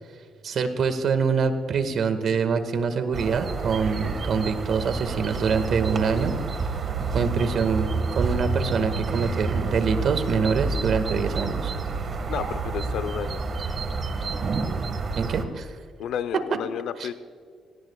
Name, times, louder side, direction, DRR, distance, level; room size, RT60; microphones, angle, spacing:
voice 1, 0.4-6.4 7.1-7.9 8.1-11.7 15.2-15.8 17.0-17.1, right 5 dB, 60° right, 8 dB, 1.8 m, -25 dB
sound 1, 3.1-15.4, right 4 dB, 45° right, 1.8 m, -29 dB
voice 2, 12.3-13.4 16.0-17.1, left 9 dB, 80° left, 12 dB, 0.8 m, -31 dB
25.5 x 18.5 x 2.4 m, 2.2 s
cardioid pair, 90°, 0 cm